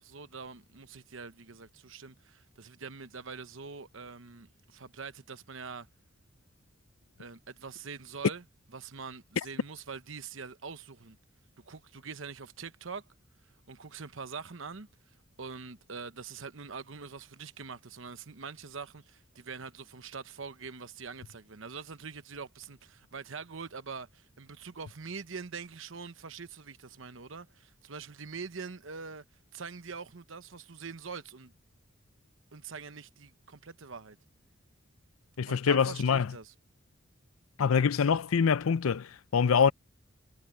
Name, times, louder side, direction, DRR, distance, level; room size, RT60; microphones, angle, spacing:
voice 1, 0.0-5.9 7.2-8.4 8.7-11.2 11.7-13.0 13.7-14.9 15.4-29.2 29.5-31.5 32.5-34.2 35.5-36.5, right 5 dB, 70° right, 1.0 m, -44 dB
voice 2, 35.4-36.3 37.6-39.7, left 6 dB, 85° left, 0.5 m, -25 dB
head